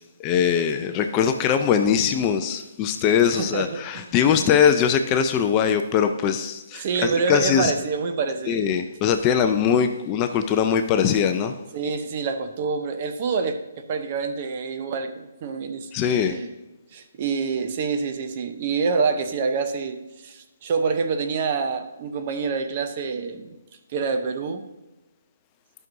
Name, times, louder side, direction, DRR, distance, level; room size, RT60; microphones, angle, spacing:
voice 1, 0.2-7.7 8.5-11.6 15.9-16.4, left 8 dB, 20° left, 7 dB, 0.4 m, -21 dB
voice 2, 3.3-4.1 4.3-4.5 6.8-8.6 11.7-16.5 16.9-23.5 23.9-24.7, right 5 dB, 35° right, 7 dB, 0.7 m, -27 dB
10.5 x 6.0 x 2.6 m, 1.1 s
hypercardioid pair, 160°, 0 cm